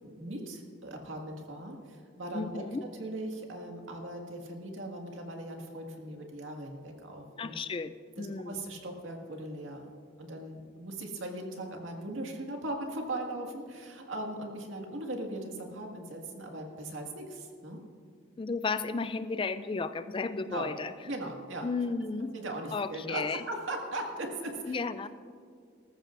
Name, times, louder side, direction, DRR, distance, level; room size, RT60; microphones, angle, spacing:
voice 1, 0.0-2.6 3.0-7.5 8.2-9.9 10.2-17.8 20.4-20.7 21.0-21.7 22.3-24.8, right 1 dB, 75° right, 2 dB, 1.9 m, -39 dB
voice 2, 2.3-2.8 7.4-8.6 18.4-20.9 21.6-22.3 22.7-23.4 24.7-25.1, left 4 dB, 25° left, 13 dB, 0.3 m, -33 dB
19.5 x 14.0 x 2.5 m, 2.2 s
head